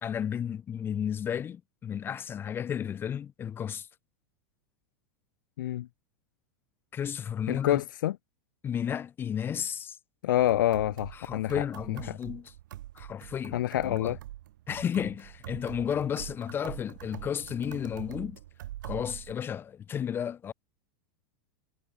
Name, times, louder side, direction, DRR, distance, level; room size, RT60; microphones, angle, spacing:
voice 1, 0.0-3.9 6.9-7.8 8.6-10.0 11.1-12.5 13.0-14.2 14.7-18.4 18.8-20.5, left 8 dB, 20° left, 0.4 m, -33 dB
voice 2, 5.6-5.9 7.5-8.2 10.2-11.6 12.1-12.2 13.5-14.2, left 13 dB, 85° left, 0.7 m, -27 dB
sound 1, 10.4-19.3, right 14 dB, 80° right, 0.8 m, -44 dB
supercardioid pair, 125°, 10 cm